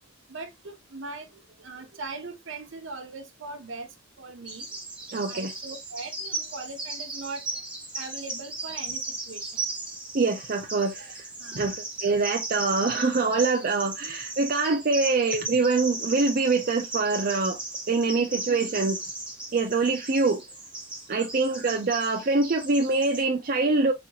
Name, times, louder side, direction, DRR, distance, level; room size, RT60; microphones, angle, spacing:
voice 1, 0.3-3.9 4.2-4.6 5.3-7.4 7.9-9.0 9.3-9.4 11.4-11.7 13.8-13.9 18.0-18.4 21.2-21.3, right 3 dB, 70° right, 0.9 m, -40 dB
Bird vocalization bird call bird song, 4.4-23.2, right 2 dB, 5° right, 1.2 m, -36 dB
voice 2, 5.1-5.5 10.1-11.3 11.6-11.7 12.0-17.6 17.9-19.0 19.5-20.4 21.1-23.9, right 3 dB, 45° right, 0.5 m, -24 dB
4.2 x 2.9 x 2.3 m
head